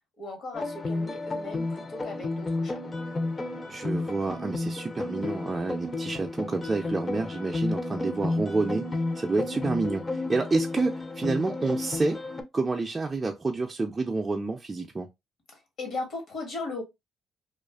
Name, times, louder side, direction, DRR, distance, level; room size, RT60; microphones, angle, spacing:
voice 1, 0.2-2.8 15.5-16.8, left 3 dB, 65° left, 1.2 m, -37 dB
sound 1, 0.5-12.4, left 2 dB, 30° left, 0.5 m, -32 dB
voice 2, 3.7-12.2 12.5-15.1, right 3 dB, 25° right, 0.4 m, -29 dB
2.4 x 2.4 x 2.3 m
cardioid pair, 90°, 0 cm